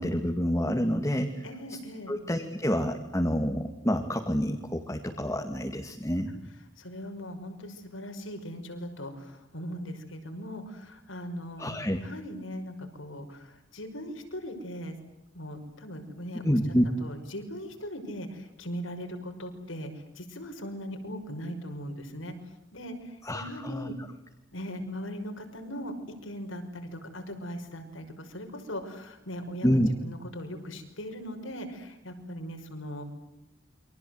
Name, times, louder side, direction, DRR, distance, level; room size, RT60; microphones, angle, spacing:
voice 1, 0.0-1.4 2.1-6.3 11.6-12.0 16.4-16.9 23.2-23.9 29.6-29.9, equal, 15° left, 3 dB, 2.2 m, -28 dB
voice 2, 1.4-2.1 6.8-15.0 15.3-16.6 17.0-22.3 22.7-24.0 24.5-25.9 26.2-33.0, equal, 80° left, 5 dB, 5.8 m, -39 dB
29.0 x 24.5 x 8.0 m, 0.90 s
head